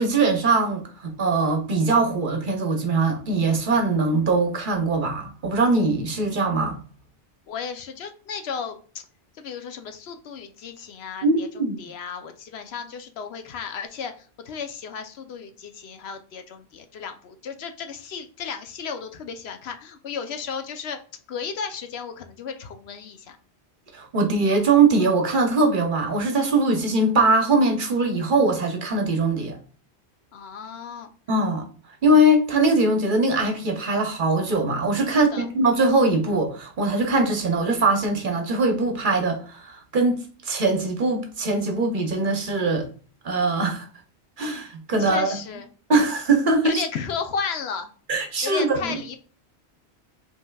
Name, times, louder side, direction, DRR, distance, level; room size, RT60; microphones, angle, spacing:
voice 1, 0.0-6.8 11.2-11.8 23.9-29.6 31.3-31.7 32.0-40.2 40.4-42.9 43.2-43.9 44.4-45.4 45.9-46.8 48.1-48.8, right 2 dB, 50° right, 0.9 m, -21 dB
voice 2, 7.5-9.0 9.3-11.5 11.8-21.0 21.3-23.4 30.3-31.1 35.1-35.5 45.0-45.7 46.6-47.9 48.4-49.2, left 6 dB, 70° left, 0.9 m, -34 dB
5.3 x 3.3 x 2.2 m
omnidirectional pair, 1.1 m